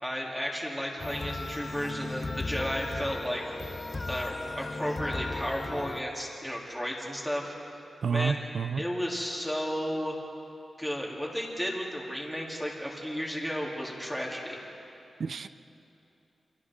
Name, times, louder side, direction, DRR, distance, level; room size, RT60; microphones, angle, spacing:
voice 1, 0.0-3.4 4.1-7.5 8.1-8.4 8.8-10.1 10.8-14.6, equal, 5° left, -3 dB, 3.0 m, -33 dB
sound 1, 1.0-6.0, left 2 dB, 25° left, 0.8 m, -36 dB
voice 2, 8.0-8.8 15.2-15.5, right 6 dB, 55° right, 11 dB, 0.6 m, -29 dB
29.0 x 27.5 x 3.7 m, 2.8 s
wide cardioid pair, 170°, 0 cm